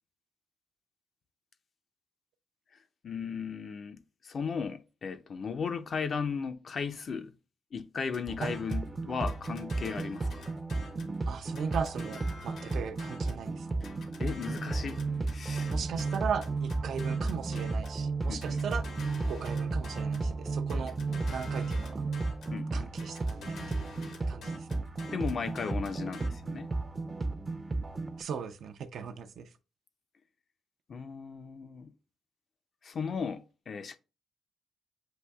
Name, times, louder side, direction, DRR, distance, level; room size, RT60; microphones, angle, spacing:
voice 1, 3.0-7.3 7.7-10.4 14.2-15.0 15.3-15.7 17.5-17.6 18.3-18.6 22.5-22.9 25.1-26.7 30.9-31.9 32.8-34.0, left 5 dB, 55° left, 0.5 m, -36 dB
sound 1, 8.1-8.9 9.3-11.2 11.5-13.4 13.8-18.0 18.4-20.3 20.7-22.6 23.0-26.3, left 3 dB, 75° left, 1.1 m, -48 dB
sound 2, 8.3-28.2, right 3 dB, 30° right, 0.5 m, -34 dB
voice 2, 11.3-13.7 15.7-18.9 19.3-20.9 21.3-22.0 22.7-24.5 28.2-29.4, right 6 dB, 70° right, 0.5 m, -37 dB
7.8 x 2.6 x 2.3 m
cardioid pair, 80°, 0 cm